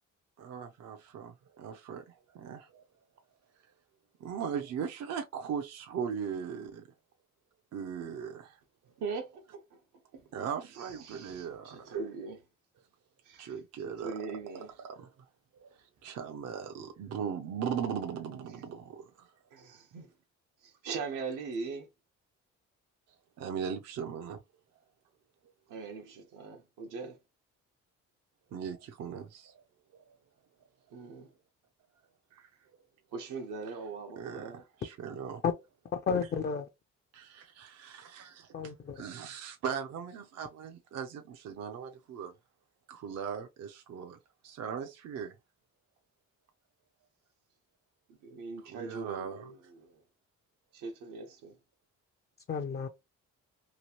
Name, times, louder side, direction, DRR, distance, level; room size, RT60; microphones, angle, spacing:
voice 1, 0.4-2.9 4.2-6.9 7.7-8.6 10.3-11.8 13.4-14.1 14.8-15.1 15.5-19.3 23.4-24.4 28.5-29.5 29.9-30.0 32.3-32.5 34.2-35.4 37.1-42.3 42.9-44.2 44.4-45.3 48.7-49.5, right 7 dB, 55° right, 0.5 m, -39 dB
voice 2, 9.0-10.3 10.7-12.4 13.2-14.7 19.5-20.1 20.6-21.9 25.7-27.2 30.9-31.3 33.1-34.6 48.1-50.0 50.7-51.6, right 4 dB, 90° right, 1.0 m, -41 dB
voice 3, 35.9-36.7 38.5-39.0 52.5-52.9, left 6 dB, 35° left, 0.4 m, -31 dB
3.0 x 2.4 x 2.8 m
cardioid pair, 90°, 30 cm